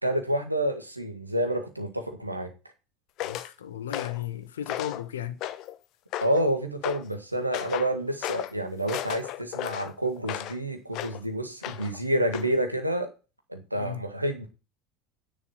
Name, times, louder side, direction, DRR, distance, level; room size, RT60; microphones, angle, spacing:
voice 1, 0.0-2.5 6.2-13.1 13.5-14.5, right 1 dB, 85° right, 1.8 m, -29 dB
voice 2, 3.2-5.4 13.7-14.0, left 10 dB, 70° left, 1.2 m, -35 dB
sound 1, 3.2-3.5 3.9-4.3 4.7-5.0 5.4-5.8 6.1-6.5 6.8-7.1 7.5-7.9 8.2-8.5 8.9-10.6 10.9-11.2 11.6-12.0 12.3-12.5, left 13 dB, 45° left, 0.9 m, -34 dB
10.0 x 6.2 x 5.4 m
figure-of-eight pair, 70°, 0 cm